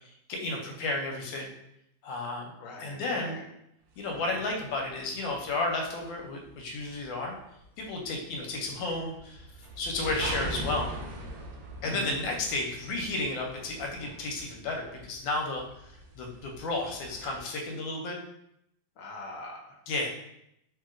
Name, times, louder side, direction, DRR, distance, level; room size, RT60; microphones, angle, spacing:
voice 1, 0.3-1.5 2.0-2.5 2.8-3.4 4.0-7.3 7.8-9.5 9.8-10.9 11.8-18.2 19.9-20.1, left 2 dB, 90° left, 1 dB, 1.4 m, -32 dB
voice 2, 2.6-3.4 4.1-4.4 11.8-12.2 19.0-19.8, left 2 dB, 65° left, -1 dB, 0.8 m, -42 dB
sound 1, 4.0-17.4, right 2 dB, 80° right, 0.8 m, -42 dB
3.0 x 2.8 x 2.4 m, 0.78 s
omnidirectional pair, 2.1 m